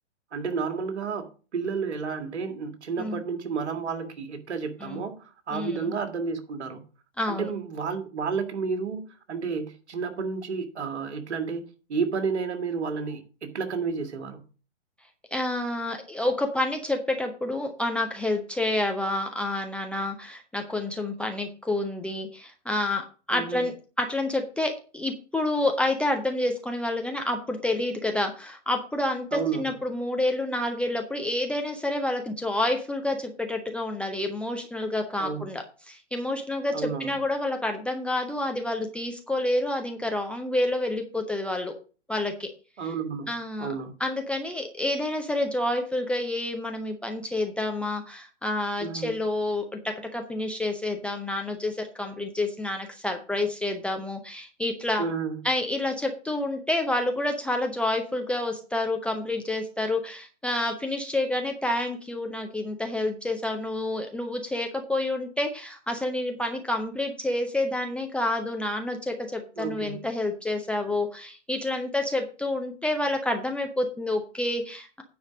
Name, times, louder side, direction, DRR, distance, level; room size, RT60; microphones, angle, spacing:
voice 1, 0.3-6.8 7.3-11.6 11.9-14.4 23.3-23.7 29.3-29.8 35.2-35.5 36.7-37.2 42.8-43.3 43.6-44.0 48.8-49.2 55.0-55.4 69.6-70.0, right 5 dB, 65° right, 2.0 m, -31 dB
voice 2, 5.5-5.8 7.2-7.5 15.3-23.7 24.0-41.7 42.1-42.5 43.3-43.7 44.0-49.8 50.1-55.1 55.4-75.0, left 1 dB, 5° left, 0.5 m, -28 dB
9.5 x 5.1 x 6.2 m
figure-of-eight pair, 120°, 36 cm